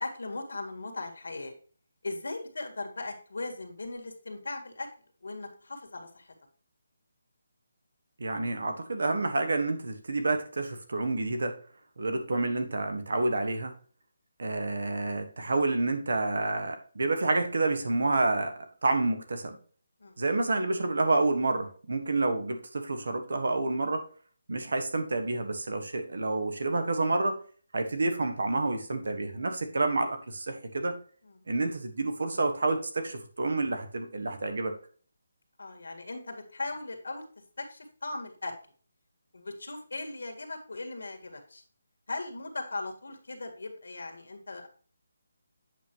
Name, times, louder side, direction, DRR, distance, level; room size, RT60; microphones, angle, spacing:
voice 1, 0.0-1.5 2.0-4.9 5.2-6.3 20.0-20.2 31.2-31.4 35.6-37.2 37.6-38.5 39.3-41.6 42.1-44.7, left 2 dB, 75° left, 4 dB, 1.8 m, -38 dB
voice 2, 8.2-11.6 12.0-13.7 14.4-18.5 18.8-19.6 20.2-24.0 24.5-27.4 27.7-31.0 31.5-34.7, right 2 dB, 65° right, 6 dB, 1.5 m, -29 dB
8.4 x 5.6 x 3.1 m, 0.42 s
hypercardioid pair, 175°, 0 cm